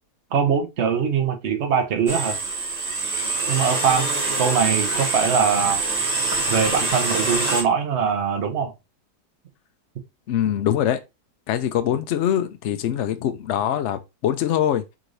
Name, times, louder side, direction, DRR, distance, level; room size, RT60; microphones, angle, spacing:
voice 1, 0.3-2.4 3.5-4.1 4.4-5.8 6.5-8.7, right 6 dB, 50° right, 1.1 m, -22 dB
sound 1, 2.1-7.6, right 3 dB, 30° right, 1.1 m, -25 dB
voice 2, 10.3-11.0 11.5-14.8, left 10 dB, 70° left, 0.7 m, -23 dB
4.6 x 3.9 x 2.6 m
omnidirectional pair, 1.7 m